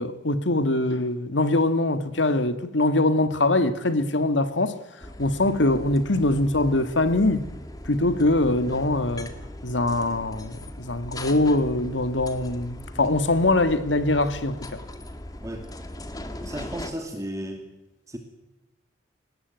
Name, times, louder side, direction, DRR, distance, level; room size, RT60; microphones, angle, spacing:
voice 1, 0.0-4.7 5.2-7.4 7.9-9.3 9.6-14.8, left 2 dB, 80° left, 1.8 m, -23 dB
sound 1, 5.0-16.9, left 1 dB, 20° left, 1.9 m, -39 dB
voice 2, 16.4-17.7 18.1-18.2, right 1 dB, 15° right, 2.5 m, -34 dB
23.5 x 19.0 x 9.4 m
head